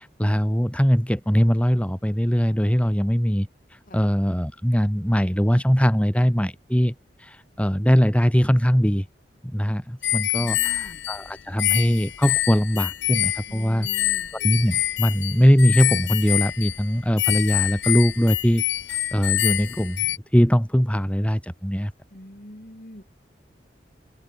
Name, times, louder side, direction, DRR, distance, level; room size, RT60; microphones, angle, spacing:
voice 1, 0.0-3.5 3.9-6.9 7.2-9.0 9.4-13.9 14.4-18.6 19.1-20.1 20.3-21.9, equal, 5° left, 2.8 m, -21 dB
sound 1, 10.0-20.2, left 14 dB, 80° left, 0.8 m, -26 dB
voice 2, 10.4-11.1 13.5-14.3 22.1-23.0, equal, 50° left, 5.1 m, -43 dB
head